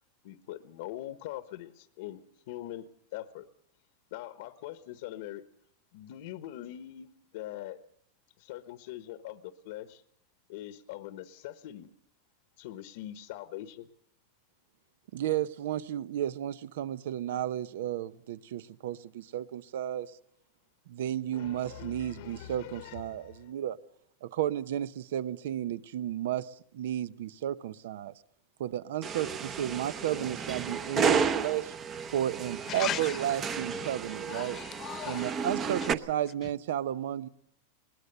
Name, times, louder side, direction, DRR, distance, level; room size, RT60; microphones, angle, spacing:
voice 1, 0.2-3.5 4.1-5.4 5.9-7.8 8.4-10.0 10.5-11.9 12.6-13.9 21.3-23.5, left 13 dB, 60° left, 1.0 m, -43 dB
voice 2, 15.1-20.1 20.9-23.8 24.2-28.1 28.6-31.7 32.1-34.6 35.1-37.3, right 11 dB, 75° right, 0.7 m, -33 dB
sound 1, 29.0-35.9, right 6 dB, 25° right, 0.8 m, -32 dB
voice 3, 32.7-33.2 33.8-33.9 34.3-35.3, left 11 dB, 25° left, 1.0 m, -36 dB
21.0 x 19.5 x 6.7 m
supercardioid pair, 150°, 0 cm